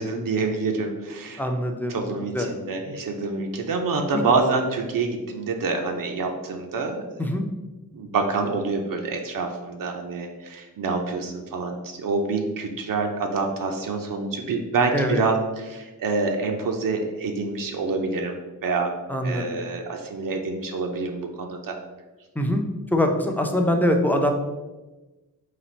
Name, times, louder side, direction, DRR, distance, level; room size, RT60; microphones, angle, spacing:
voice 1, 0.0-1.4 1.9-7.0 7.9-19.0 19.2-21.8, right 4 dB, 70° right, 3 dB, 0.6 m, -27 dB
voice 2, 1.4-2.0 2.3-2.5 4.1-4.2 7.2-7.5 14.9-15.2 19.1-19.6 22.4-22.6 22.9-24.3, left 1 dB, 5° left, 3 dB, 0.5 m, -23 dB
4.1 x 2.5 x 4.3 m, 1.1 s
wide cardioid pair, 95°, 35 cm